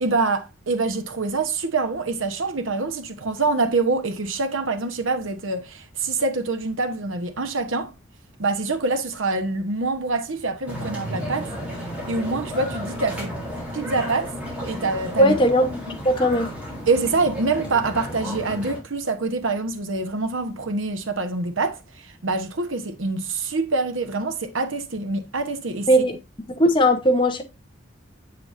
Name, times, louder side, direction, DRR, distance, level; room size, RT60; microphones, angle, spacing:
voice 1, 0.0-7.9 8.4-11.5 12.1-13.3 13.7-14.3 14.7-15.4 15.9-16.0 16.9-25.9, right 3 dB, 90° right, 1.1 m, -25 dB
sound 1, 10.6-18.8, equal, 5° right, 3.3 m, -33 dB
voice 2, 15.2-15.7 16.0-16.6 25.9-26.1 26.5-27.4, equal, 25° left, 1.0 m, -18 dB
7.6 x 6.9 x 2.6 m
head